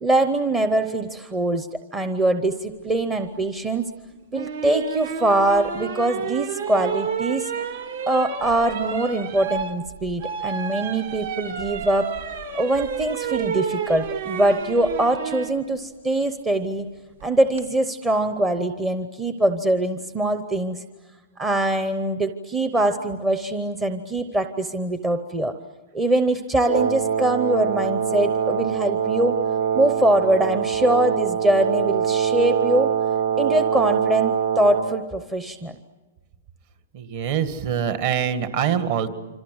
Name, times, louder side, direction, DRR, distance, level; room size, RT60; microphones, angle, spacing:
voice 1, 0.0-3.9 4.3-7.5 8.1-12.1 12.5-16.9 17.2-20.8 21.4-25.5 25.9-29.4 29.7-32.9 33.4-35.8, right 1 dB, 10° right, 8 dB, 0.8 m, -23 dB
sound 1, 4.3-15.5 17.2-17.6, right 7 dB, 65° right, 2.7 m, -30 dB
Wind instrument woodwind instrument, 26.6-34.9, right 8 dB, 80° right, 2.5 m, -23 dB
voice 2, 36.9-39.1, right 8 dB, 40° right, 9 dB, 1.9 m, -24 dB
26.5 x 26.5 x 7.9 m, 1.2 s
hypercardioid pair, 170°, 0 cm